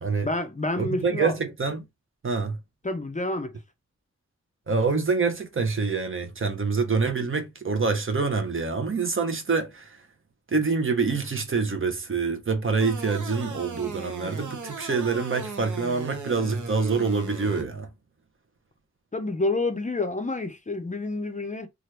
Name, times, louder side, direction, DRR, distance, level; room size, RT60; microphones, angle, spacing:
voice 1, 0.2-1.3 2.8-3.5 19.1-21.7, left 2 dB, 25° left, 0.5 m, -28 dB
voice 2, 0.8-1.8 2.2-2.6 4.7-10.0 10.5-17.9, right 4 dB, 45° right, 0.6 m, -26 dB
sound 1, 12.8-17.6, right 4 dB, 90° right, 0.8 m, -37 dB
2.9 x 2.4 x 3.2 m
wide cardioid pair, 80°, 29 cm